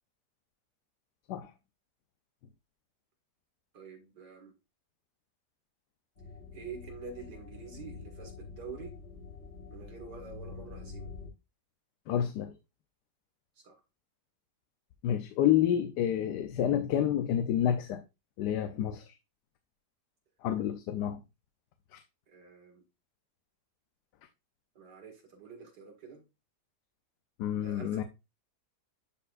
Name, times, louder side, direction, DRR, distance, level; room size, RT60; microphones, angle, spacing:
voice 1, 3.7-4.5 6.5-8.9 9.7-11.1 13.6-13.8 22.3-22.8 24.7-26.2 27.6-28.0, right 5 dB, 85° right, 2.6 m, -47 dB
sound 1, 6.2-11.3, left 4 dB, 50° left, 2.0 m, -46 dB
voice 2, 12.1-12.5 15.0-18.0 18.4-19.1 20.4-21.2 21.9-22.0 27.4-28.0, left 10 dB, 85° left, 1.2 m, -29 dB
10.5 x 4.3 x 2.5 m
omnidirectional pair, 1.7 m